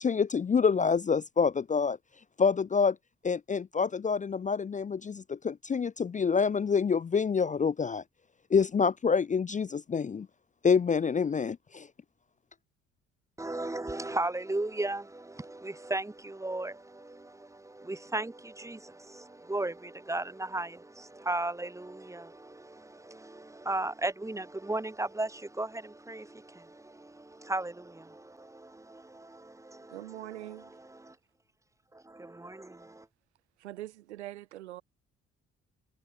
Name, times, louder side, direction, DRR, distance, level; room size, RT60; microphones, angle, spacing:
voice 1, 0.0-2.0 2.4-3.0 3.2-8.0 8.5-10.3 10.6-11.9, left 5 dB, 25° left, 0.5 m, -27 dB
voice 2, 13.4-30.3 30.6-31.1 31.9-33.1, right 2 dB, 10° right, 1.3 m, -36 dB
voice 3, 29.9-30.8 33.6-34.8, right 15 dB, 85° right, 0.7 m, -43 dB
figure-of-eight pair, 40°, 34 cm